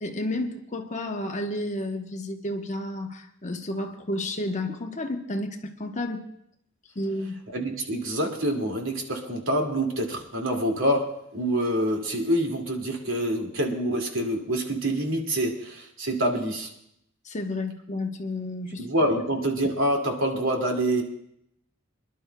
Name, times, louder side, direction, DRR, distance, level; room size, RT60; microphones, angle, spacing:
voice 1, 0.0-6.2 6.9-7.3 17.2-18.9, left 1 dB, 35° left, 4 dB, 1.0 m, -31 dB
voice 2, 7.5-16.7 18.8-21.0, right 1 dB, 90° right, 1 dB, 2.2 m, -26 dB
27.5 x 11.0 x 2.3 m, 0.75 s
head